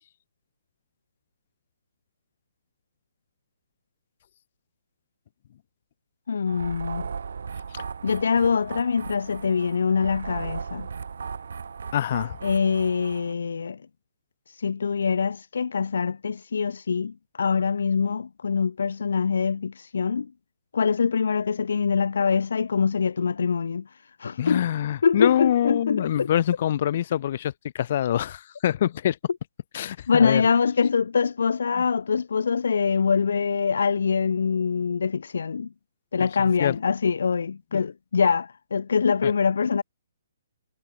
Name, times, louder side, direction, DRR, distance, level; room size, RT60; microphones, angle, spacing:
voice 1, 6.3-7.1 8.0-10.9 12.4-13.8 14.5-20.3 20.7-23.9 24.2-24.6 25.0-26.3 30.1-35.7 36.1-39.8, left 5 dB, 80° left, 0.7 m, -24 dB
sound 1, 6.5-13.3, right 6 dB, 80° right, 2.0 m, -36 dB
voice 2, 11.9-12.4 24.4-29.2 29.7-30.4 36.2-36.3 36.6-36.8 37.7-37.8 39.2-39.3, left 11 dB, 45° left, 2.6 m, -25 dB
hypercardioid pair, 160°, 0 cm